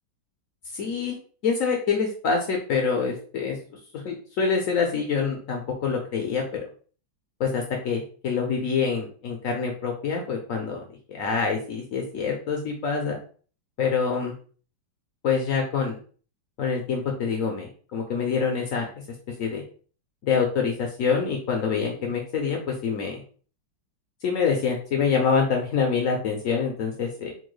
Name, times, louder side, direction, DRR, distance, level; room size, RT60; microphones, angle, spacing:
voice 1, 0.7-1.2 1.4-3.6 4.0-6.6 7.4-13.2 13.8-14.3 15.2-16.0 16.6-18.9 19.4-19.6 20.2-23.2 24.2-27.3, left 5 dB, 80° left, 1 dB, 0.7 m, -26 dB
4.3 x 2.2 x 3.1 m, 0.41 s
omnidirectional pair, 2.2 m